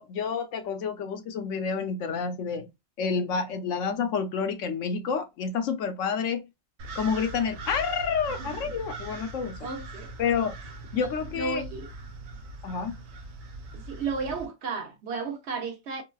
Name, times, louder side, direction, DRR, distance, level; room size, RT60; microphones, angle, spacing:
voice 1, 0.0-2.6 3.0-6.4 7.0-9.5 10.2-10.5 10.9-11.6 12.6-13.0, left 6 dB, 75° left, 0.9 m, -29 dB
sound 1, 6.8-14.5, right 3 dB, 90° right, 1.2 m, -41 dB
voice 2, 9.6-10.1 10.9-11.1 11.3-11.9 13.7-16.0, right 4 dB, 60° right, 0.9 m, -33 dB
3.8 x 2.2 x 2.3 m
omnidirectional pair, 1.3 m